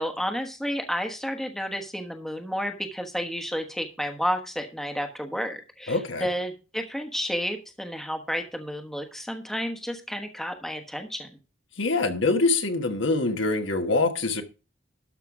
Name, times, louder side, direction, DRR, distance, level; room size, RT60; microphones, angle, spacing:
voice 1, 0.0-11.3, equal, ahead, 1.2 m, -31 dB
voice 2, 5.9-6.3 11.8-14.4, left 3 dB, 70° left, 1.4 m, -24 dB
12.5 x 5.6 x 4.8 m
head